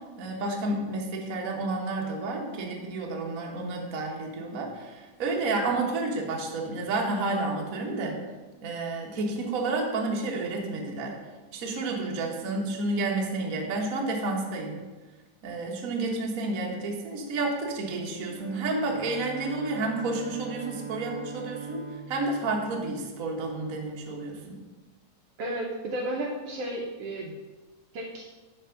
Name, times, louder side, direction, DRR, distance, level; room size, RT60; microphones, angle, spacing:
voice 1, 0.2-8.2 8.6-11.2 11.5-14.8 15.4-24.6, right 2 dB, 55° right, 0 dB, 0.9 m, -30 dB
Bowed string instrument, 18.1-23.7, right 6 dB, 85° left, 2.7 m, -42 dB
voice 2, 25.4-27.3 27.9-28.3, right 1 dB, 70° right, -1 dB, 1.5 m, -33 dB
10.0 x 3.4 x 5.8 m, 1.2 s
omnidirectional pair, 3.4 m